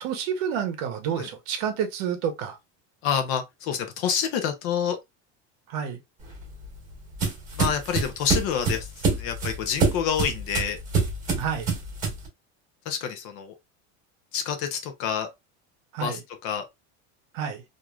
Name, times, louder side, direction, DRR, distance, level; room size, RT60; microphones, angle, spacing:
voice 1, 0.0-2.6 5.7-6.0 11.4-11.7 15.9-16.2 17.3-17.6, right 8 dB, 60° right, 0.8 m, -29 dB
voice 2, 3.0-5.0 7.5-10.8 12.9-13.5 14.3-15.3 16.0-16.7, left 8 dB, 40° left, 0.5 m, -28 dB
sound 1, 6.2-12.3, right 4 dB, 20° right, 1.1 m, -27 dB
3.0 x 2.5 x 2.2 m
cardioid pair, 180°, 34 cm